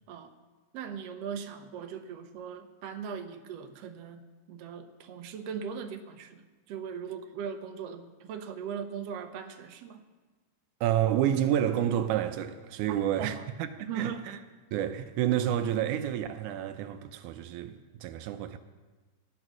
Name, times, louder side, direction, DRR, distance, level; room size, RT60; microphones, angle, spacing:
voice 1, 0.7-4.2 4.5-6.4 6.7-10.0 12.9-13.4 13.8-14.3, right 7 dB, 65° right, 1.9 m, -39 dB
voice 2, 10.8-14.4 14.7-18.6, right 11 dB, 85° right, 2.1 m, -29 dB
14.5 x 10.5 x 6.1 m
omnidirectional pair, 3.5 m